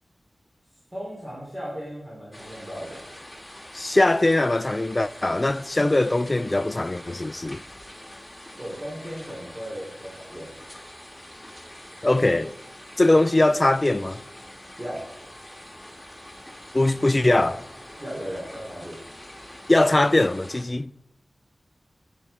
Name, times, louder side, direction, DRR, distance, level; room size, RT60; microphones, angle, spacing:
voice 1, 0.9-3.0 8.6-10.5 14.8-15.0 18.0-19.0, equal, 30° right, 3.7 m, -36 dB
sound 1, 2.3-20.6, left 1 dB, ahead, 2.1 m, -44 dB
voice 2, 3.7-7.6 12.0-12.5 13.0-14.2 16.7-17.6 19.7-20.9, left 2 dB, 30° left, 0.4 m, -21 dB
9.7 x 9.6 x 4.4 m
wide cardioid pair, 55°, 0 cm